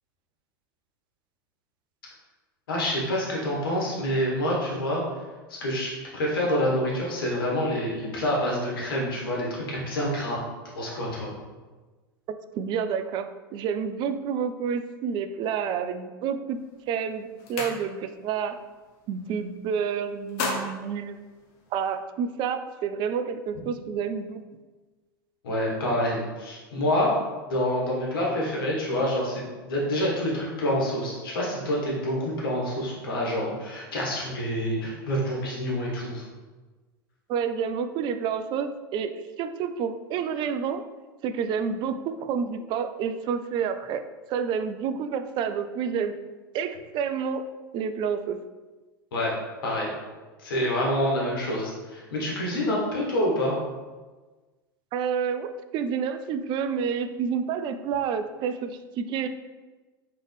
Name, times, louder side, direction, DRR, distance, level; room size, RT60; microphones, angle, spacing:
voice 1, 2.7-5.0 5.5-10.4 10.7-11.3 25.4-27.1 27.5-36.2 49.1-49.3 49.6-49.9 50.4-53.5, left 1 dB, 70° left, -3 dB, 1.5 m, -27 dB
voice 2, 12.3-16.6 16.9-18.6 19.1-21.2 21.7-24.4 37.3-40.8 41.2-44.0 44.3-46.2 46.5-47.4 47.7-48.4 54.9-59.3, right 7 dB, 40° right, 9 dB, 0.3 m, -29 dB
sound 1, 16.6-16.8 17.1-18.3 18.6-18.9 19.2-19.8 20.1-22.0, left 3 dB, 55° left, 0.7 m, -35 dB
3.8 x 3.4 x 3.4 m, 1.3 s
hypercardioid pair, 90°, 12 cm